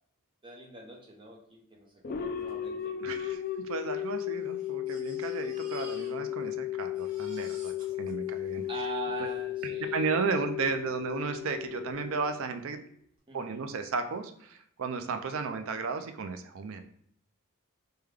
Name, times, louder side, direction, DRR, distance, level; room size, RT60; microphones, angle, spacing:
voice 1, 0.4-2.9 8.7-10.3 13.3-13.6, right 3 dB, 25° right, -2 dB, 0.7 m, -42 dB
sound 1, 2.0-12.7, left 12 dB, 40° left, 0.3 m, -35 dB
Crying sobbing, 2.5-2.6 2.8-2.9 3.7-6.6 6.8-9.4 10.2-10.3 10.7-10.8, right 2 dB, 80° right, 1.3 m, -53 dB
voice 2, 3.0-7.7 8.0-8.6 9.6-12.8 13.3-16.8, right 5 dB, 65° right, 7 dB, 0.4 m, -34 dB
3.5 x 2.2 x 3.3 m, 0.64 s
head